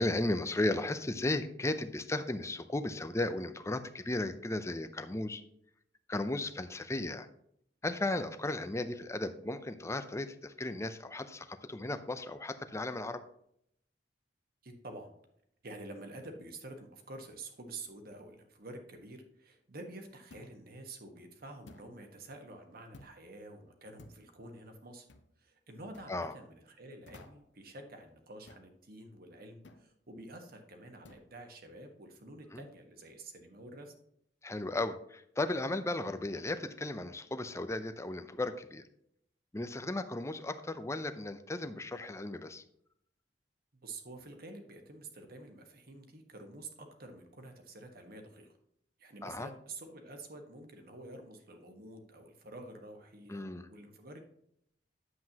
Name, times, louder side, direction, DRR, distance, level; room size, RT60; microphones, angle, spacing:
voice 1, 0.0-5.4 6.1-7.3 7.8-13.2 26.1-26.3 32.5-32.6 34.4-38.8 39.5-42.6 49.2-49.5 53.3-53.7, left 2 dB, 15° left, 10 dB, 0.5 m, -35 dB
voice 2, 14.6-15.1 15.6-25.1 25.4-33.9 43.8-48.5 49.0-54.2, right 2 dB, 55° right, 4 dB, 1.4 m, -49 dB
sound 1, 20.3-20.6 21.7-22.0 22.9-23.2 24.0-24.3 25.1-25.3 25.9-26.1 27.1-27.5 28.5-28.7 29.6-29.9 31.0-31.3, left 2 dB, 75° left, 0.8 m, -55 dB
9.6 x 7.7 x 2.9 m, 0.72 s
head